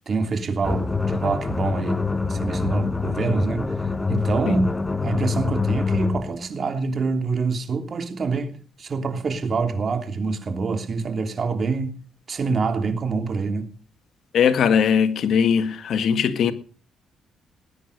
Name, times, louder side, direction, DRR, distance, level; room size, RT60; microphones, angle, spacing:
voice 1, 0.1-2.0 2.3-4.8 5.0-11.9 12.3-13.7, right 4 dB, 45° right, 3.2 m, -26 dB
sound 1, 0.6-6.3, left 4 dB, 15° left, 1.4 m, -25 dB
voice 2, 14.3-16.5, left 7 dB, 65° left, 1.9 m, -19 dB
20.0 x 10.0 x 6.6 m
cardioid pair, 90°, 0 cm